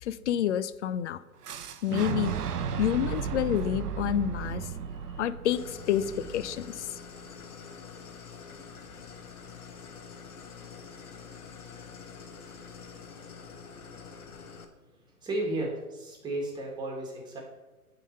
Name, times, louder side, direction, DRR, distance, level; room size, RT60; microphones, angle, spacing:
voice 1, 0.0-1.2 1.8-2.4 2.8-4.7 5.2-6.9, left 10 dB, 50° left, 15 dB, 0.5 m, -28 dB
Boom, 1.4-7.3, right 7 dB, 80° right, 0.8 m, -35 dB
Idling, 5.5-14.6, left 6 dB, 75° left, 1.3 m, -46 dB
voice 2, 13.8-14.2 15.2-17.4, right 2 dB, 10° right, -1 dB, 1.6 m, -34 dB
9.0 x 3.8 x 6.5 m, 1.1 s
hypercardioid pair, 135°, 45 cm